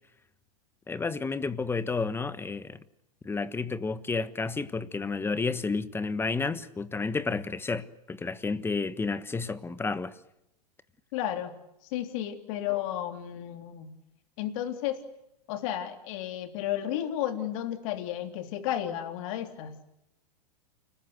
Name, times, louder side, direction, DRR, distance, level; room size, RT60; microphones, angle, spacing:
voice 1, 0.9-2.8 3.2-10.1, left 4 dB, 10° left, 1.4 m, -31 dB
voice 2, 11.1-11.5 11.9-13.9 14.4-15.0 15.5-19.7, left 11 dB, 55° left, 3.4 m, -32 dB
29.5 x 20.5 x 8.1 m
hypercardioid pair, 115°, 20 cm